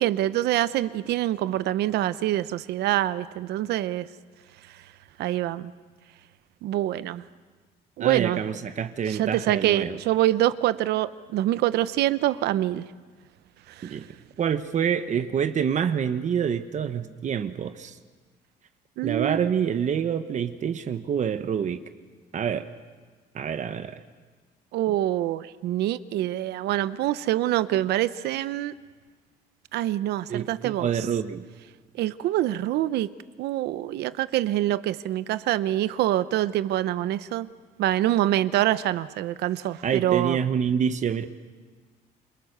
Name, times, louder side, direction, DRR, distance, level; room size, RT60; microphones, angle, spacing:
voice 1, 0.0-4.1 5.2-5.7 6.6-7.2 8.0-8.4 9.1-12.8 13.8-14.0 19.0-19.5 24.7-28.7 29.7-30.9 32.0-33.1 33.4-37.5 37.8-40.4, right 14 dB, 80° right, 15 dB, 0.9 m, -25 dB
voice 2, 8.0-10.0 13.8-14.1 14.4-17.9 19.0-21.8 22.3-22.7 23.3-24.0 30.3-31.5 39.8-41.3, right 8 dB, 45° right, 10 dB, 1.1 m, -27 dB
28.5 x 23.0 x 6.7 m, 1.4 s
cardioid pair, 110°, 17 cm